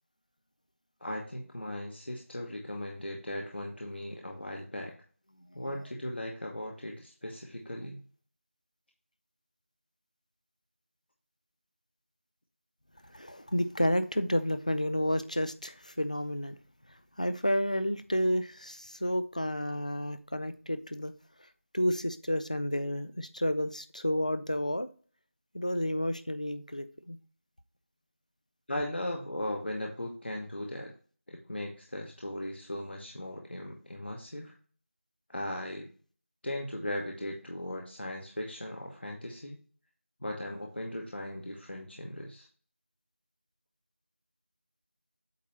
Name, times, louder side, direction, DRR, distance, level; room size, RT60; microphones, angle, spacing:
voice 1, 1.0-5.0 5.5-8.0 28.7-30.9 31.3-34.5 35.3-35.9 36.4-39.6 40.2-42.5, left 1 dB, 50° left, 1.1 m, -38 dB
voice 2, 13.1-16.6 17.2-21.1 21.7-24.9 25.5-27.2, equal, 30° left, 0.4 m, -31 dB
8.3 x 2.9 x 5.2 m
figure-of-eight pair, 175°, 8 cm